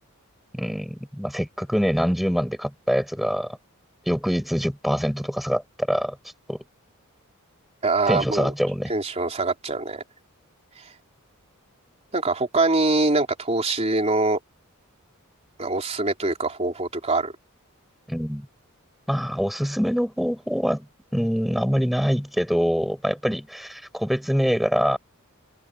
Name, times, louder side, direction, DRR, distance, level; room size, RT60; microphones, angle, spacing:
voice 1, 0.5-3.6 4.1-6.2 6.5-6.6 8.1-8.9 18.1-18.5 19.1-20.9 21.1-25.0, equal, ahead, 7.1 m, -24 dB
voice 2, 7.8-8.5 8.9-10.0 12.1-14.4 15.6-17.3, right 3 dB, 30° right, 3.6 m, -23 dB
head